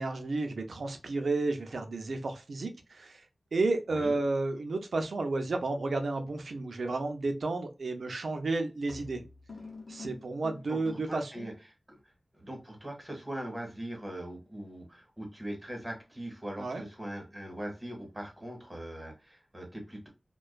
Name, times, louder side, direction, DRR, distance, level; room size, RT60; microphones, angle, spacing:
voice 1, 0.0-3.2 3.5-9.2 9.9-11.5 16.6-16.8, right 3 dB, 90° right, 5 dB, 0.4 m, -32 dB
sound 1, 8.0-8.2 8.9-11.3, left 4 dB, 80° left, 0.7 m, -47 dB
voice 2, 10.7-12.0 12.3-20.1, right 1 dB, 20° right, 1 dB, 1.1 m, -41 dB
2.5 x 2.2 x 2.2 m, 0.28 s
wide cardioid pair, 65°, 0 cm